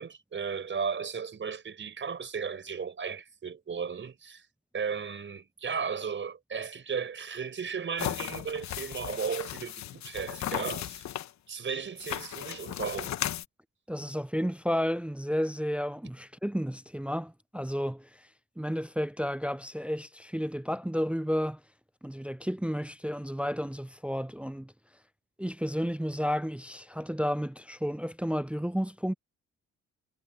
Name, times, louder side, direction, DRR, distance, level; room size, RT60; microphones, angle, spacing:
voice 1, 0.0-4.5 4.7-11.0 11.5-13.1, right 6 dB, 40° right, 5.4 m, -35 dB
sound 1, 8.0-11.3 12.0-13.5, left 11 dB, 65° left, 1.1 m, -36 dB
voice 2, 13.9-18.3 18.6-21.6 22.0-24.7 25.4-29.1, equal, 5° right, 0.5 m, -32 dB
cardioid pair, 90°, 30 cm